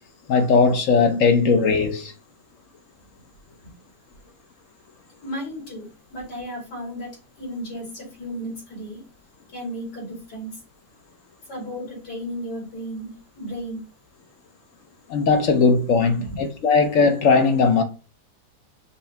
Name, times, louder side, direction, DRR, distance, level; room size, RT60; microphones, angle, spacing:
voice 1, 0.3-2.1 15.1-17.8, left 4 dB, 60° left, 1.0 m, -18 dB
voice 2, 5.2-7.1 7.4-9.0 9.5-10.6 11.5-13.8 16.2-16.5, equal, 75° left, 3.2 m, -34 dB
5.6 x 2.7 x 3.4 m
omnidirectional pair, 1.8 m